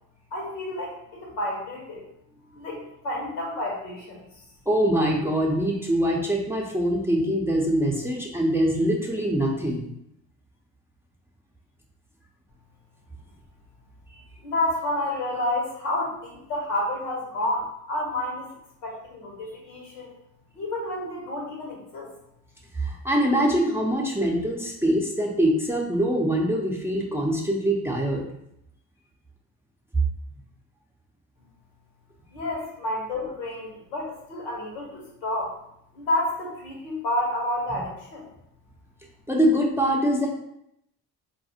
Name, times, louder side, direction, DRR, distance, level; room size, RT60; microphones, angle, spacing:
voice 1, 0.3-2.1 2.5-4.4 14.4-18.5 18.8-20.1 20.5-22.1 32.3-35.5 35.9-38.2, left 1 dB, 80° left, -2 dB, 1.0 m, -30 dB
voice 2, 4.7-9.9 22.7-28.3 39.3-40.3, right 1 dB, 5° right, -1 dB, 0.6 m, -23 dB
4.0 x 2.3 x 2.7 m, 0.77 s
figure-of-eight pair, 40°, 50 cm